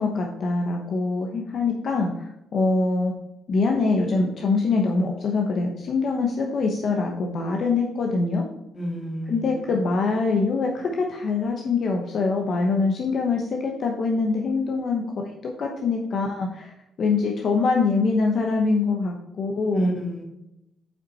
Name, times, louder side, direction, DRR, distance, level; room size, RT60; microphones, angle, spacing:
voice 1, 0.0-3.1 3.5-8.4 9.3-15.0 15.6-16.7 17.0-19.9, left 4 dB, 55° left, 1 dB, 1.0 m, -24 dB
voice 2, 8.7-9.7 19.7-20.2, right 1 dB, 25° left, -1 dB, 2.6 m, -30 dB
8.0 x 5.7 x 4.2 m, 0.86 s
cardioid pair, 135°, 0 cm